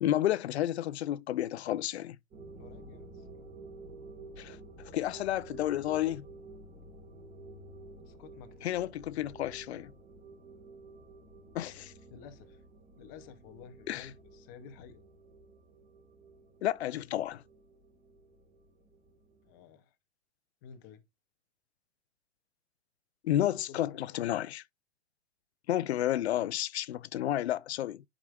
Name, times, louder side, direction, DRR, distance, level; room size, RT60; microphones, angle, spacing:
voice 1, 0.0-2.2 4.4-4.6 4.9-6.2 8.6-9.9 11.5-11.9 13.9-14.1 16.6-17.4 23.2-24.6 25.7-28.0, left 13 dB, 70° left, 0.5 m, -31 dB
sound 1, 2.3-19.6, right 2 dB, 25° right, 1.9 m, -52 dB
voice 2, 2.6-3.3 8.0-8.9 12.1-12.6 13.0-15.0 19.4-20.0 20.6-21.0 23.7-24.5, left 7 dB, 20° left, 0.5 m, -52 dB
10.5 x 5.0 x 2.3 m
hypercardioid pair, 160°, 35 cm